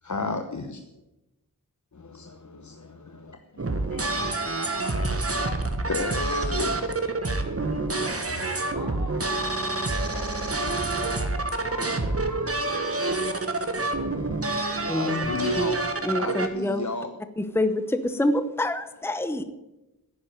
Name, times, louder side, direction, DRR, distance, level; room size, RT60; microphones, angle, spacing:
voice 1, 0.0-0.8 1.9-3.8 5.8-6.8 14.9-15.9 16.2-17.2, left 3 dB, 50° left, 7 dB, 1.0 m, -33 dB
sound 1, 3.6-16.5, right 2 dB, 40° right, 1.6 m, -27 dB
voice 2, 3.9-6.0 7.3-7.9 8.7-9.6 10.0-13.5, left 2 dB, 75° left, 1 dB, 3.7 m, -45 dB
voice 3, 14.8-15.2 15.5-15.7 16.0-16.8 17.4-19.4, left 1 dB, 5° left, 11 dB, 0.9 m, -26 dB
10.5 x 9.9 x 9.1 m, 0.99 s
wide cardioid pair, 55°, 37 cm